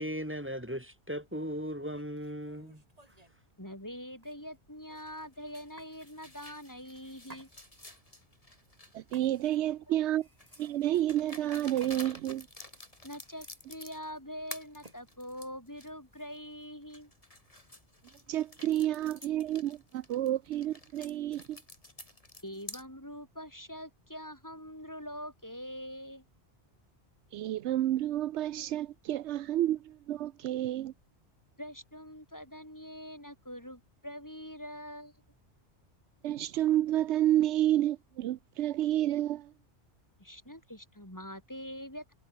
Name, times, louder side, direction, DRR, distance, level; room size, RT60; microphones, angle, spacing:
voice 1, 0.0-2.8, equal, 10° right, 3.5 m, -37 dB
sound 1, 0.9-1.1 1.8-3.4 4.2-4.8 5.8-6.0 7.2-8.0 9.1-9.7 10.1-11.2 11.8-12.3 12.7-13.9 14.8-15.0 16.1-16.5, right 1 dB, 35° right, 3.8 m, -57 dB
voice 2, 3.6-7.5 13.0-17.1 22.4-26.2 31.6-35.1 40.2-42.1, equal, 15° left, 4.9 m, -44 dB
sound 2, 4.9-9.7 10.4-14.2 14.5-15.9 16.4-16.5 16.9-22.8, left 1 dB, 30° left, 4.3 m, -50 dB
voice 3, 8.9-10.3 10.6-12.5 18.3-21.6 27.3-30.9 36.2-39.5, right 13 dB, 80° right, 0.9 m, -30 dB
omnidirectional pair, 1.2 m